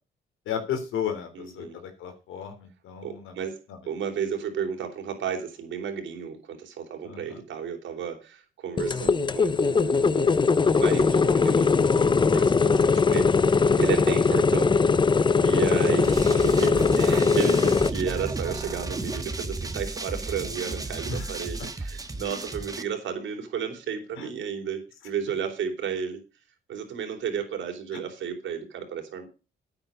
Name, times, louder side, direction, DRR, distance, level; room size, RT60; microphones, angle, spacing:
voice 1, 0.5-3.4 3.7-3.8 7.0-7.4 12.5-12.8 21.1-21.3 24.2-24.3, left 8 dB, 85° left, 7 dB, 3.4 m, -34 dB
voice 2, 1.3-1.8 3.0-3.6 3.9-10.5 10.7-14.7 15.4-26.2 26.7-29.3, right 7 dB, 70° right, 4 dB, 3.9 m, -33 dB
sound 1, 8.8-17.9, left 4 dB, 25° left, 0.6 m, -21 dB
sound 2, 16.0-22.8, right 2 dB, 20° right, 1.5 m, -33 dB
9.5 x 9.0 x 5.3 m, 0.32 s
cardioid pair, 90°, 20 cm